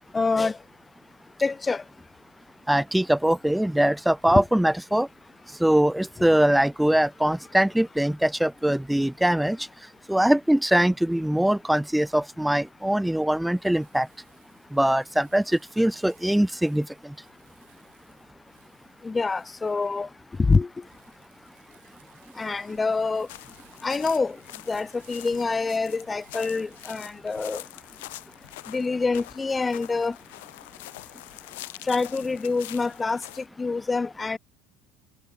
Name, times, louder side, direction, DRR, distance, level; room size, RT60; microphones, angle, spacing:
voice 1, 0.1-0.6 1.4-1.8 4.3-4.4 19.0-20.1 20.4-20.7 22.4-23.3 23.8-24.4 24.7-27.6 28.7-30.2 31.9-33.2 33.6-34.4, left 4 dB, 20° left, 0.7 m, -25 dB
voice 2, 2.7-5.1 5.6-9.6 10.1-14.1 14.7-17.1, right 1 dB, 5° right, 0.4 m, -22 dB
Crumpling crinkling, 13.3-27.6, right 21 dB, 75° right, 7.0 m, -62 dB
sound 1, 23.3-33.5, left 19 dB, 75° left, 1.7 m, -44 dB
hypercardioid pair, 70°, 0 cm